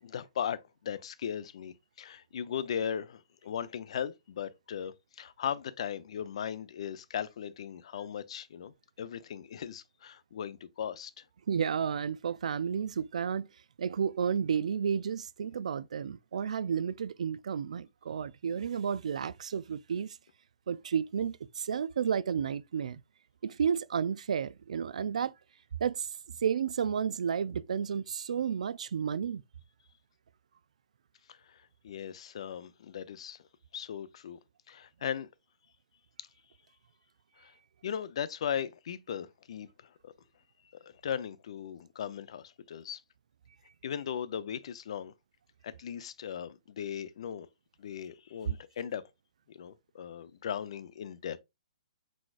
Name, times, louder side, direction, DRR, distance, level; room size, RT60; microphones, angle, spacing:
voice 1, 0.0-11.2 31.3-33.5 33.7-34.4 34.7-35.3 36.2-36.3 37.4-37.5 37.8-40.1 40.8-43.0 43.8-45.1 45.6-47.5 47.8-49.0 49.5-51.4, left 8 dB, 55° left, 0.5 m, -38 dB
voice 2, 11.5-13.5 13.8-20.2 20.7-23.0 23.4-25.3 25.8-26.1 26.4-29.4, right 7 dB, 75° right, 0.3 m, -32 dB
4.6 x 4.2 x 2.4 m
hypercardioid pair, 165°, 4 cm